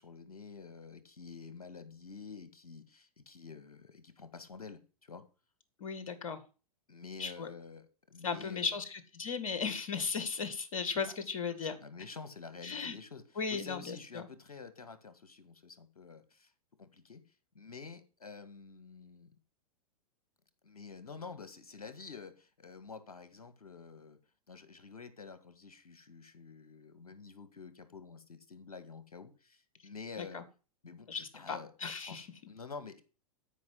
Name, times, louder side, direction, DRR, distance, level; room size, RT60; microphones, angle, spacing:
voice 1, 0.0-5.2 6.9-8.8 11.6-16.5 16.8-17.2 17.5-19.3 20.6-24.2 24.5-30.4 30.8-31.7 32.1-33.0, left 5 dB, 75° left, 11 dB, 1.9 m, -49 dB
voice 2, 5.8-6.4 7.2-7.5 8.2-11.8 12.6-13.0 13.4-14.2 30.2-30.4 31.1-32.3, left 5 dB, 60° left, 11 dB, 2.2 m, -36 dB
13.0 x 5.6 x 7.7 m, 0.35 s
figure-of-eight pair, 100°, 19 cm